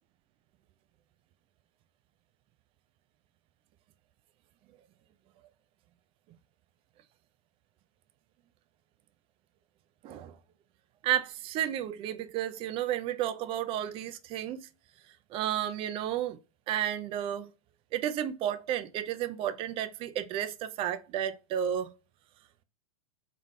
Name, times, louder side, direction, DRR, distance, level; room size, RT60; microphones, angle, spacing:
voice 1, 10.0-10.4 11.0-14.7 15.3-16.4 16.7-17.5 17.9-21.9, right 11 dB, 30° right, 0.5 m, -32 dB
3.7 x 3.6 x 3.2 m
hypercardioid pair, 105°, 18 cm